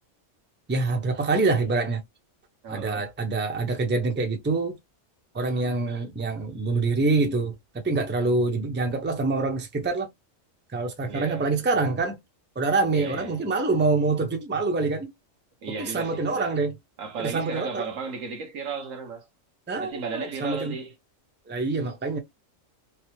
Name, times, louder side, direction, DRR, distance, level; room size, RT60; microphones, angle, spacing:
voice 1, 0.7-2.0 2.7-4.8 5.3-10.1 10.7-12.2 12.6-15.1 15.8-16.8 17.2-17.9 19.7-20.8 21.5-22.2, right 3 dB, 15° right, 0.5 m, -25 dB
voice 2, 2.6-3.1 11.1-11.5 12.9-13.4 15.6-16.6 17.0-19.3 19.8-20.9, right 5 dB, 80° right, 1.2 m, -35 dB
3.1 x 2.0 x 3.0 m
omnidirectional pair, 1.4 m